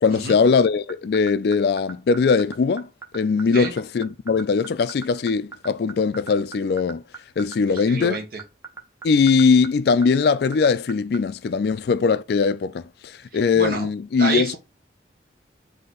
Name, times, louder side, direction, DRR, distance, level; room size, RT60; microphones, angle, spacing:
voice 1, 0.0-2.9 3.1-7.0 7.4-8.2 9.0-14.6, left 5 dB, 55° left, 0.3 m, -20 dB
sound 1, 0.6-11.2, right 5 dB, 15° right, 0.6 m, -37 dB
voice 2, 7.7-8.4 13.3-13.9 14.2-14.6, right 3 dB, 50° right, 0.9 m, -28 dB
4.1 x 2.8 x 3.7 m
head